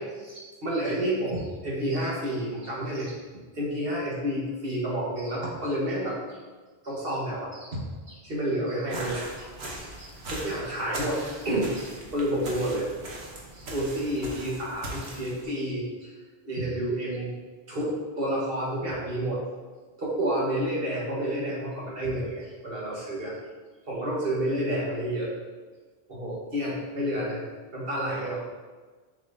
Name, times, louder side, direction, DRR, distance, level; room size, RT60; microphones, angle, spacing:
voice 1, 0.0-3.2 3.5-6.4 6.8-7.8 8.1-12.9 13.5-16.1 16.4-17.3 17.7-19.4 20.0-23.3 23.9-25.3 26.1-27.4 27.7-28.4, right 1 dB, 65° right, -5 dB, 1.8 m, -30 dB
sound 1, 8.9-15.4, right 1 dB, 90° right, 1.4 m, -39 dB
6.9 x 5.9 x 2.8 m, 1.4 s
omnidirectional pair, 1.0 m